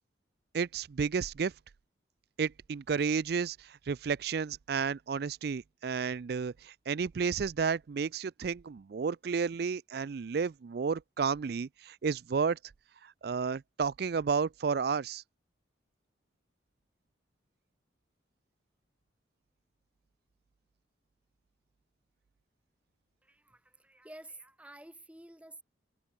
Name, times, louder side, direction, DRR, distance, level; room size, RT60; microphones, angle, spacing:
voice 1, 0.5-1.5 2.4-12.6 13.0-15.2, right 5 dB, 55° right, 0.4 m, -32 dB
voice 2, 23.2-25.6, right 1 dB, 5° right, 1.8 m, -51 dB
head